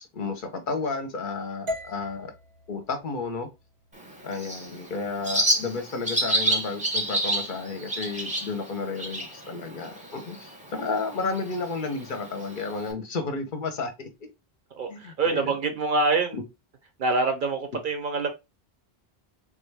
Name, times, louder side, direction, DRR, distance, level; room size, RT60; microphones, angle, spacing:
voice 1, 0.0-2.3 2.7-3.5 4.2-14.1 14.9-15.5 16.3-16.4, left 4 dB, 60° left, 0.7 m, -32 dB
sound 1, 1.7-5.8, left 2 dB, 80° right, 1.1 m, -41 dB
Bird, 3.9-12.9, right 1 dB, 10° right, 0.7 m, -30 dB
voice 2, 14.7-16.4 17.0-18.3, right 3 dB, 60° right, 0.7 m, -25 dB
3.5 x 2.2 x 3.1 m
omnidirectional pair, 1.0 m